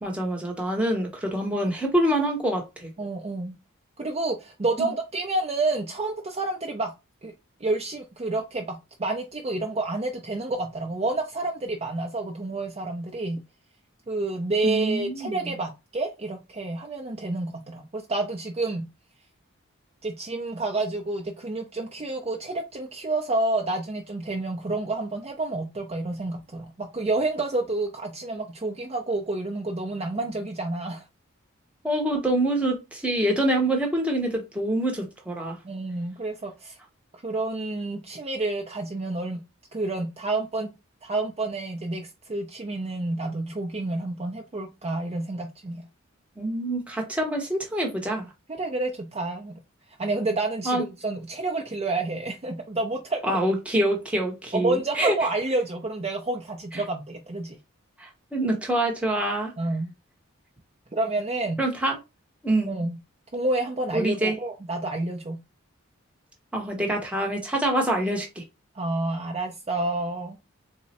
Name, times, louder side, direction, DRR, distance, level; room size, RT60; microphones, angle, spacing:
voice 1, 0.0-2.9 4.8-4.9 14.6-15.6 31.8-35.6 46.4-48.3 50.6-50.8 53.2-55.2 56.7-56.8 58.0-59.5 61.6-62.0 62.4-62.7 63.9-64.3 66.5-68.4, right 1 dB, 5° right, 0.8 m, -26 dB
voice 2, 3.0-3.6 4.0-6.9 7.2-7.3 7.6-13.4 14.1-18.9 20.0-31.0 35.6-36.8 37.1-39.4 39.7-40.7 41.0-45.9 48.5-49.6 50.0-53.4 54.5-57.6 59.6-59.9 60.9-61.6 62.7-63.0 63.3-65.4 68.7-70.4, right 2 dB, 30° right, 0.4 m, -29 dB
3.6 x 2.0 x 4.1 m
head